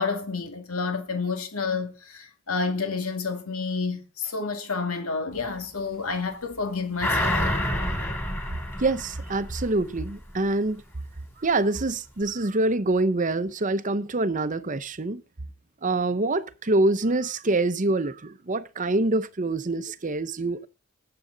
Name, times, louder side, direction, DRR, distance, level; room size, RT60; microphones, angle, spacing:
voice 1, 0.0-7.3, left 4 dB, 85° left, 2.3 m, -29 dB
sound 1, 7.0-9.9 10.3-10.4, left 1 dB, 10° left, 3.5 m, -28 dB
voice 2, 8.8-10.8 11.4-15.2 15.8-20.7, right 2 dB, 35° right, 0.8 m, -25 dB
20.0 x 7.8 x 3.9 m
head